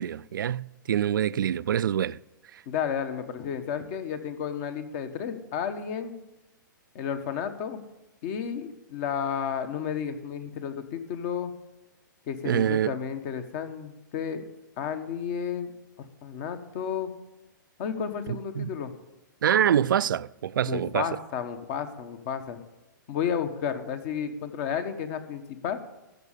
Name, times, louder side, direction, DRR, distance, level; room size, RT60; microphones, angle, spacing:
voice 1, 0.0-2.2 2.5-2.6 12.4-12.9 18.3-18.7 19.4-21.0, right 10 dB, 80° right, 0.4 m, -25 dB
voice 2, 2.7-6.1 6.9-7.8 8.2-11.5 12.3-14.5 14.8-15.7 16.2-17.1 17.8-18.9 20.6-22.6 23.1-25.8, left 7 dB, 45° left, 1.4 m, -32 dB
13.5 x 6.6 x 6.8 m
hypercardioid pair, 130°, 11 cm